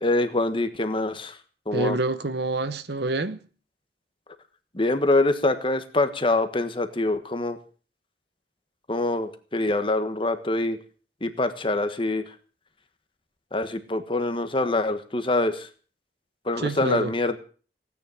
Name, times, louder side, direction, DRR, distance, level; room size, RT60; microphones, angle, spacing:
voice 1, 0.0-1.3 1.7-2.0 4.7-7.6 8.9-10.8 11.2-12.2 13.5-15.7 16.4-17.4, left 2 dB, 30° left, 1.4 m, -25 dB
voice 2, 1.7-3.4 16.6-17.1, right 2 dB, 65° right, 1.0 m, -27 dB
17.0 x 9.6 x 7.2 m
head